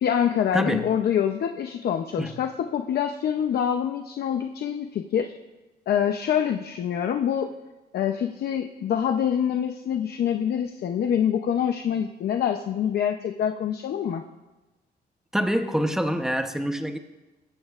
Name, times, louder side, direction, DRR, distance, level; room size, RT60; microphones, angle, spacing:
voice 1, 0.0-5.3 5.9-7.5 7.9-14.2, left 9 dB, 65° left, 5 dB, 0.7 m, -25 dB
voice 2, 0.5-0.8 2.2-2.3 15.3-17.0, equal, 5° right, 6 dB, 0.9 m, -25 dB
20.5 x 15.0 x 2.5 m, 1.1 s
cardioid pair, 140°, 18 cm